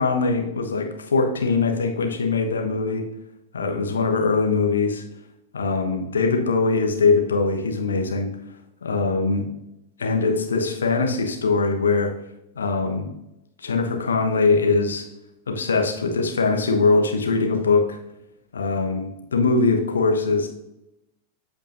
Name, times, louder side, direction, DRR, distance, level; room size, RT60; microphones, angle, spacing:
voice 1, 0.0-3.0 3.5-5.0 5.5-8.3 8.8-9.5 10.0-12.1 12.6-13.1 13.6-15.1 15.5-18.0 18.5-20.5, left 4 dB, 70° left, 3 dB, 1.1 m, -22 dB
13.5 x 5.2 x 2.6 m, 0.88 s
figure-of-eight pair, 90°, 0 cm